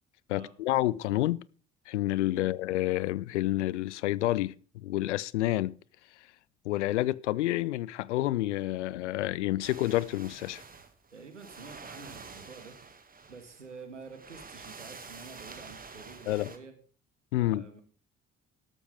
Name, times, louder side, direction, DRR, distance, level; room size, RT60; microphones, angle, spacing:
voice 1, 0.3-1.4 1.9-5.8 6.6-10.6 16.3-16.5 17.3-17.7, left 16 dB, 75° left, 0.5 m, -29 dB
sound 1, 9.6-16.6, right 4 dB, 25° right, 2.0 m, -48 dB
voice 2, 11.1-12.7 13.3-16.7 17.4-17.8, right 4 dB, 90° right, 1.7 m, -48 dB
13.0 x 12.0 x 3.4 m
figure-of-eight pair, 50°, 35 cm